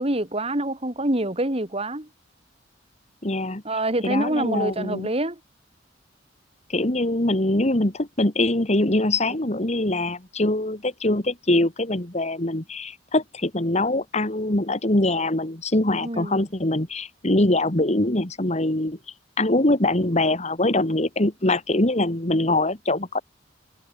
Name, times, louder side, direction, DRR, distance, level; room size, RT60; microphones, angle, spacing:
voice 1, 0.0-2.1 3.6-5.4 16.0-16.4, right 1 dB, 30° right, 3.2 m, -26 dB
voice 2, 3.2-3.6 4.0-5.1 6.7-19.0 19.4-23.2, left 1 dB, 35° left, 2.1 m, -23 dB
head